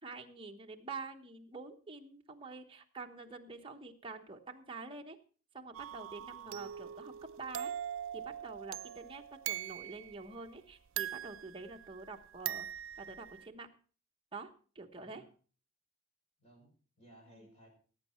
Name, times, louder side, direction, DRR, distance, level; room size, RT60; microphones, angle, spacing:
voice 1, 0.0-5.2 5.5-7.7 8.1-12.7 13.0-13.7 14.3-15.2 17.3-17.5, right 4 dB, 25° right, 3 dB, 1.1 m, -47 dB
sound 1, 5.7-10.2 11.0-12.1 12.5-13.5, right 11 dB, 80° right, 0.5 m, -41 dB
voice 2, 6.3-6.8 15.0-15.3 16.4-17.7, right 1 dB, 35° left, 1 dB, 5.6 m, -61 dB
17.5 x 8.4 x 4.4 m, 0.40 s
head